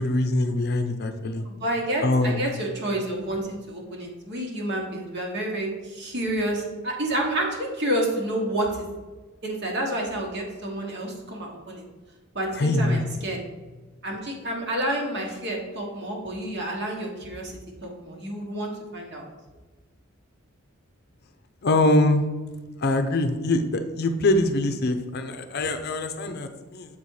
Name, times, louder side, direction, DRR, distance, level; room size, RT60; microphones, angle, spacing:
voice 1, 0.0-1.4 2.0-2.4 12.6-13.0 21.6-22.2 22.8-27.0, left 2 dB, 50° left, 7 dB, 0.6 m, -23 dB
voice 2, 1.4-8.9 9.4-11.8 12.3-13.4 14.0-19.3, right 1 dB, 55° right, 0 dB, 1.5 m, -29 dB
7.3 x 4.2 x 4.7 m, 1.3 s
head